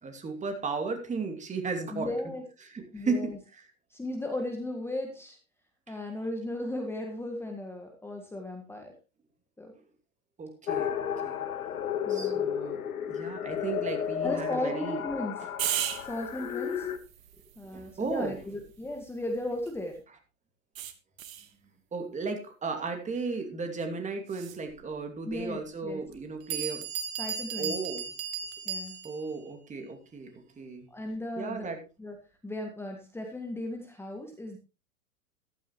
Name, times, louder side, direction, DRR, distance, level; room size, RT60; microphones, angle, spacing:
voice 1, 0.0-2.1 2.6-3.7 5.9-6.0 10.4-11.4 12.1-15.0 17.6-18.4 21.9-26.9 27.6-28.1 29.0-30.9 31.4-31.8, right 4 dB, 15° right, 5 dB, 2.6 m, -35 dB
voice 2, 1.9-2.4 2.9-3.4 3.9-5.4 5.9-8.9 9.6-9.7 12.0-12.4 14.2-15.3 16.1-16.9 17.6-20.0 25.3-26.0 27.2-27.8 28.7-29.0 30.9-31.7 32.0-32.2 32.4-34.6, left 1 dB, 5° left, 3 dB, 1.7 m, -36 dB
sound 1, 10.7-17.0, left 9 dB, 80° left, 1.4 m, -33 dB
sound 2, 15.6-20.0 20.7-21.5 24.3-24.6, right 10 dB, 65° right, 1.6 m, -38 dB
Bell, 25.3-25.4 26.1-26.2 26.5-29.3, right 7 dB, 35° right, 1.9 m, -35 dB
14.5 x 12.0 x 3.1 m, 0.30 s
hypercardioid pair, 105°, 43 cm